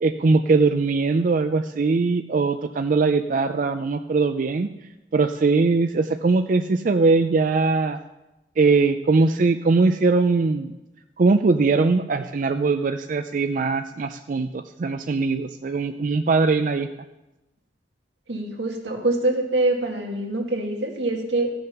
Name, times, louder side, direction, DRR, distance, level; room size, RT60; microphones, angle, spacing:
voice 1, 0.0-4.7 5.1-8.0 8.6-10.7 11.2-16.9, right 3 dB, 50° right, 8 dB, 0.4 m, -21 dB
voice 2, 18.3-21.5, right 2 dB, 90° right, 1 dB, 2.1 m, -24 dB
15.0 x 6.5 x 5.8 m, 0.99 s
head